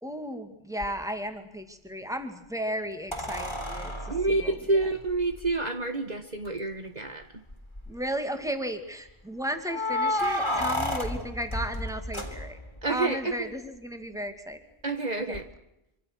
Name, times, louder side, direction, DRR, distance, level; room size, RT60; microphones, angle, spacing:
voice 1, 0.0-4.9 7.9-12.6 12.9-14.6 15.3-15.4, equal, 5° right, 7 dB, 2.5 m, -34 dB
sound 1, 0.8-0.9 3.1-5.5 6.5-6.6 6.8-6.9 7.5-8.0 9.7-12.8 15.3-15.4, left 1 dB, 25° left, 3.4 m, -31 dB
voice 2, 4.1-7.3 12.8-13.5 14.8-15.4, right 3 dB, 45° right, 6 dB, 1.5 m, -28 dB
26.0 x 26.0 x 6.2 m, 0.85 s
omnidirectional pair, 1.0 m